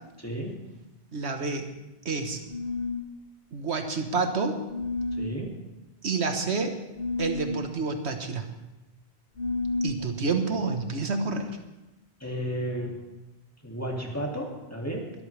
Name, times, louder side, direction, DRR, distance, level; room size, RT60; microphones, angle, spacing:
voice 1, 0.2-0.6 5.2-5.6 10.0-10.3 12.2-13.0 13.6-15.1, equal, 15° left, -1 dB, 2.4 m, -33 dB
voice 2, 1.1-1.6 2.0-2.4 3.5-4.6 6.0-6.7 7.2-8.4 9.8-11.5, right 4 dB, 90° right, 5 dB, 1.6 m, -28 dB
sound 1, 2.5-3.1 4.7-5.3 7.0-7.6 9.4-10.0, left 3 dB, 65° left, 1.3 m, -30 dB
21.5 x 13.5 x 3.4 m, 0.99 s
omnidirectional pair, 1.1 m